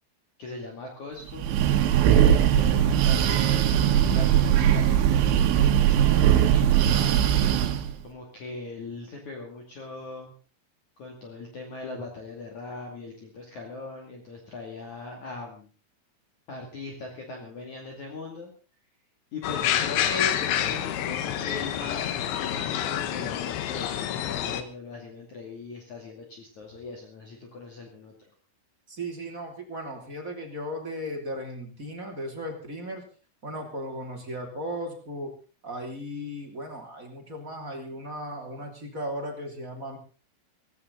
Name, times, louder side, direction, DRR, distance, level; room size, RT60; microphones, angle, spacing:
voice 1, 0.4-1.5 2.5-7.3 8.0-10.3 11.0-15.7 16.5-18.5 19.3-28.1, left 3 dB, 45° left, 1 dB, 3.4 m, -40 dB
Breathing, 1.3-7.9, right 10 dB, 90° right, 3.8 m, -20 dB
sound 1, 19.4-24.6, left 11 dB, 80° left, 3.5 m, -28 dB
voice 2, 28.9-33.0 33.4-35.3 35.6-40.0, equal, 20° right, 2 dB, 2.8 m, -36 dB
17.0 x 17.0 x 4.0 m, 0.37 s
omnidirectional pair, 5.4 m